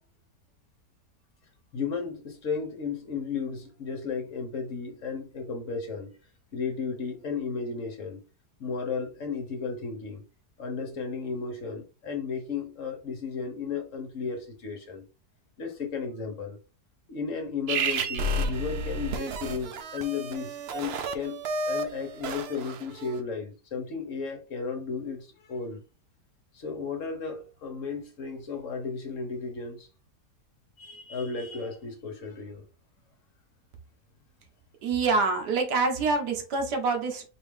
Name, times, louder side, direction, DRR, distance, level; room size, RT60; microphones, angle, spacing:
voice 1, 1.7-6.2 6.5-8.2 8.6-10.2 10.6-15.0 15.6-16.6 17.1-25.8 26.5-29.9 30.8-32.6, left 5 dB, 55° left, 1.3 m, -34 dB
sound 1, 17.7-23.1, right 2 dB, 70° right, 0.6 m, -31 dB
voice 2, 34.8-37.2, right 4 dB, 85° right, 1.6 m, -26 dB
4.5 x 2.7 x 3.6 m
omnidirectional pair, 1.7 m